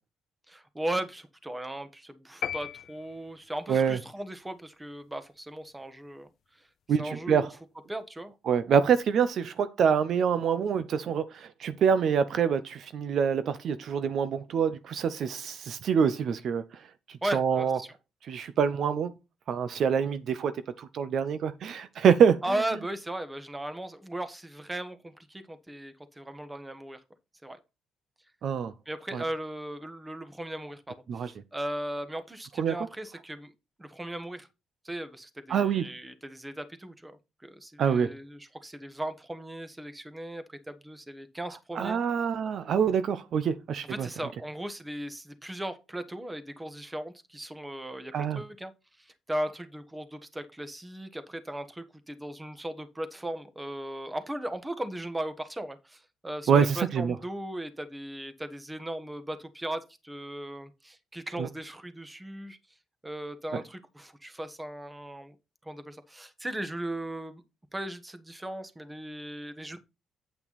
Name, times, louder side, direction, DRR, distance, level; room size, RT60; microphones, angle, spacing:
voice 1, 0.5-6.6 7.0-7.5 7.9-8.3 17.2-17.9 22.4-27.0 27.4-27.6 28.8-33.5 33.8-34.5 34.8-42.0 43.9-48.7 49.0-62.6 63.0-65.3 65.6-67.4 67.7-69.8, right 1 dB, 15° right, 1.3 m, -37 dB
sound 1, 2.4-3.7, left 10 dB, 65° left, 0.4 m, -37 dB
voice 2, 6.9-7.5 8.5-16.6 17.1-17.8 18.3-19.1 19.5-22.4 28.4-28.7 29.1-29.2 31.1-31.3 32.6-32.8 35.5-35.9 37.8-38.1 41.7-44.1 48.1-48.4 56.5-57.2 61.4-61.5, right 7 dB, 65° right, 0.7 m, -26 dB
9.0 x 5.7 x 4.1 m
cardioid pair, 90°, 0 cm